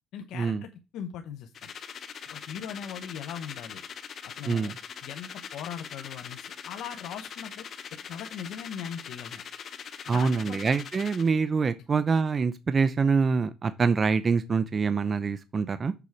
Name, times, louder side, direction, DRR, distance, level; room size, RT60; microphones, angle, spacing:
voice 1, 0.1-1.7 2.3-3.8 4.4-4.7 5.0-7.6 8.1-9.4 10.1-10.7, left 8 dB, 90° left, 0.8 m, -40 dB
sound 1, 1.5-11.3, left 7 dB, 60° left, 0.9 m, -42 dB
voice 2, 10.1-15.9, right 5 dB, 40° right, 0.6 m, -25 dB
6.9 x 4.7 x 5.8 m
cardioid pair, 90°, 0 cm